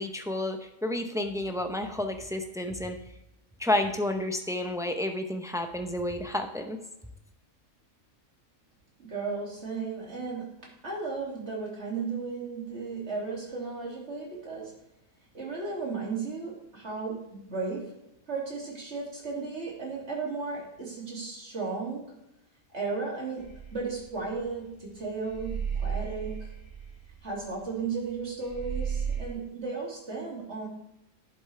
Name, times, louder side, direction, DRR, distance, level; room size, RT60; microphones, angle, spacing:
voice 1, 0.0-3.0 3.6-6.8, left 1 dB, 5° right, 5 dB, 0.4 m, -30 dB
voice 2, 9.0-10.5 10.8-14.7 15.3-18.0 18.3-22.1 22.7-26.5 27.2-30.7, right 4 dB, 50° right, -3 dB, 3.0 m, -35 dB
sound 1, 23.4-24.8 25.2-28.1 28.4-29.3, right 7 dB, 60° left, 2.6 m, -34 dB
10.5 x 8.2 x 3.4 m, 0.87 s
omnidirectional pair, 1.5 m